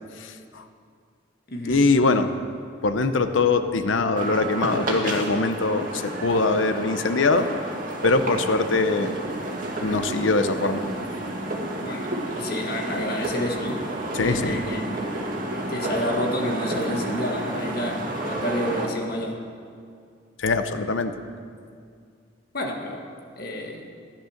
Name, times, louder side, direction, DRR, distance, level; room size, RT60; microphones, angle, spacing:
voice 1, 0.2-0.6 1.7-2.3 2.8-7.5 8.0-9.1 9.8-10.8 14.1-14.6 20.4-21.1, left 3 dB, 85° left, 9 dB, 0.8 m, -22 dB
voice 2, 1.5-1.9 11.7-13.9 14.2-15.1 15.7-19.4 22.5-23.1 23.4-23.9, left 1 dB, 55° left, 2 dB, 1.8 m, -30 dB
sound 1, 4.1-18.9, right 1 dB, 45° right, 2.1 m, -30 dB
15.5 x 10.5 x 6.5 m, 2.2 s
head